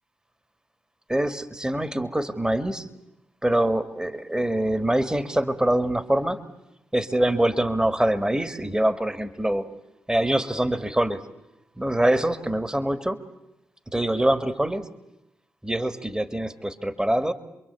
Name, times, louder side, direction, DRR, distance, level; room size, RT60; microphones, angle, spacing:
voice 1, 1.1-2.9 3.4-6.5 6.9-9.7 10.1-11.2 11.8-13.2 13.9-14.9 15.6-17.3, right 1 dB, 10° right, 11 dB, 2.1 m, -24 dB
28.0 x 23.0 x 8.4 m, 0.88 s
supercardioid pair, 50°, 6 cm